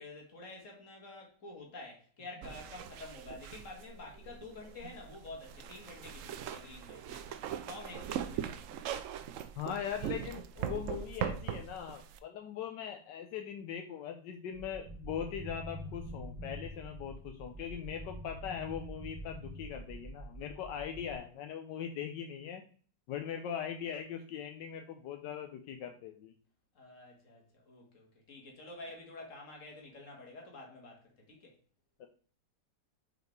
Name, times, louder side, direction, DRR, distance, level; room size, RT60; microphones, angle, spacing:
voice 1, 0.0-7.4 7.7-8.7 26.8-31.6, left 2 dB, 45° left, 0 dB, 2.1 m, -49 dB
sound 1, 2.4-12.2, right 9 dB, 85° right, 0.7 m, -40 dB
voice 2, 9.5-22.6 23.1-26.3 32.0-32.1, left 8 dB, 80° left, 5 dB, 1.3 m, -40 dB
sound 2, 14.5-21.1, equal, 10° left, 0.8 m, -45 dB
5.0 x 4.8 x 4.6 m, 0.44 s
omnidirectional pair, 1.9 m